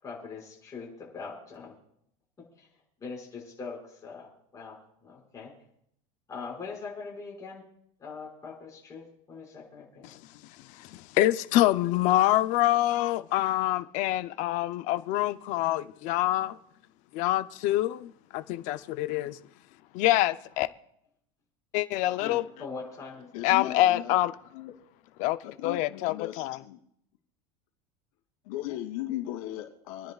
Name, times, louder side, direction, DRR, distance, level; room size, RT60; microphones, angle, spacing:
voice 1, 0.0-1.7 2.6-2.7 3.0-4.8 5.0-5.5 6.3-7.6 8.0-10.1 19.2-19.3 22.2-23.3, left 4 dB, 20° left, 5.3 m, -42 dB
voice 2, 10.6-16.6 17.1-19.4 19.9-20.7 21.7-22.4 23.4-24.3 25.2-25.4 25.6-26.6, left 15 dB, 45° left, 0.6 m, -26 dB
voice 3, 23.3-24.1 24.5-24.7 25.4-26.8 28.4-30.1, left 14 dB, 75° left, 2.8 m, -37 dB
28.5 x 10.5 x 2.4 m
supercardioid pair, 165°, 18 cm